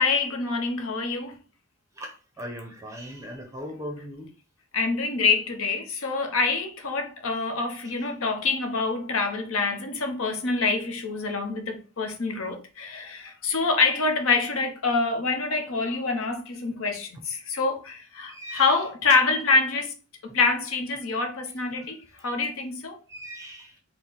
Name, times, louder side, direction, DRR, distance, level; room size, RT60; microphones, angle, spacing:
voice 1, 0.0-1.4 4.7-19.9 20.2-22.0 22.2-23.0, left 4 dB, 70° left, 0.8 m, -26 dB
voice 2, 2.0-4.3 18.3-18.8 23.1-23.8, equal, 15° right, 0.6 m, -39 dB
4.5 x 2.1 x 3.8 m
head